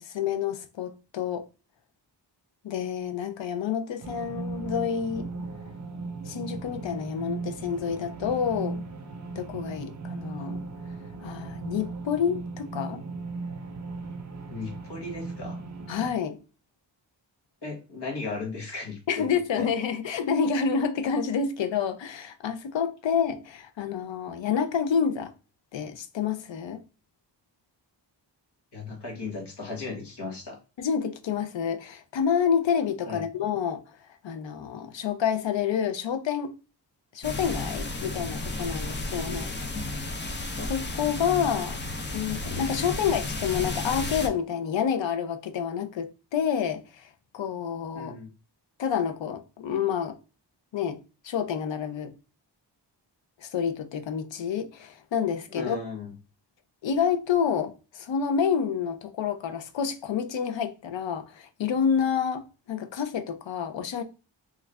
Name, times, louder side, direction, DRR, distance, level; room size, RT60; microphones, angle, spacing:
voice 1, 0.0-1.4 2.6-5.3 6.3-8.8 9.4-10.6 11.2-13.0 15.9-16.4 19.1-25.3 25.7-26.8 30.8-33.8 34.2-36.5 37.1-39.5 40.2-40.3 40.7-41.8 42.1-47.1 47.3-48.1 48.8-50.2 50.7-52.1 53.4-55.8 56.8-64.0, left 7 dB, 80° left, 0.6 m, -28 dB
sound 1, 4.0-16.1, right 3 dB, 40° right, 0.6 m, -37 dB
voice 2, 14.5-15.6 17.6-19.7 28.7-30.6 33.1-33.2 39.2-39.7 47.9-48.3 55.5-56.1, left 3 dB, 65° left, 1.2 m, -36 dB
sound 2, 37.2-44.3, left 2 dB, 25° left, 0.5 m, -33 dB
3.1 x 2.4 x 3.3 m
wide cardioid pair, 115°, 44 cm